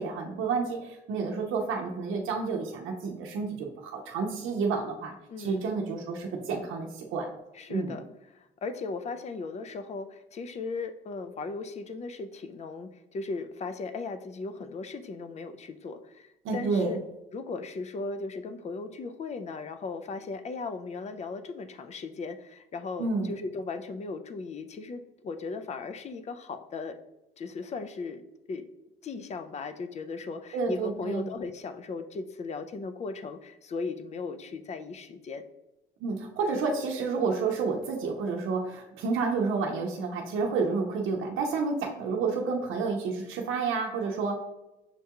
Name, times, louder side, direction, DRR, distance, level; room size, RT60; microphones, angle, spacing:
voice 1, 0.0-7.3 7.7-7.9 16.4-16.9 23.0-23.3 30.5-31.3 36.0-44.4, right 4 dB, 85° right, 1 dB, 0.6 m, -30 dB
voice 2, 5.3-5.6 7.5-8.1 8.3-17.0 17.3-27.0 27.4-28.2 28.5-28.6 29.0-35.4, left 4 dB, 35° left, 10 dB, 0.4 m, -37 dB
6.5 x 2.3 x 2.8 m, 0.96 s
cardioid pair, 90°, 20 cm